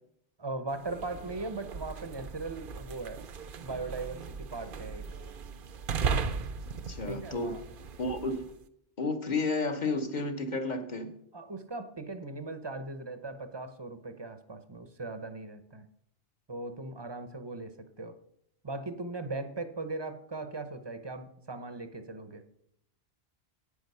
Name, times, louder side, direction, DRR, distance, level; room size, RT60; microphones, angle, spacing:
voice 1, 0.4-3.2 3.6-5.0 7.1-7.6 11.3-15.9 16.5-18.1 18.6-22.4, right 3 dB, 30° right, 0.7 m, -39 dB
sound 1, 0.7-8.6, right 5 dB, 60° right, 0.8 m, -37 dB
voice 2, 6.9-7.6 8.0-8.4 9.0-11.2, left 3 dB, 45° left, 1.1 m, -31 dB
9.6 x 8.7 x 5.5 m
omnidirectional pair, 1.1 m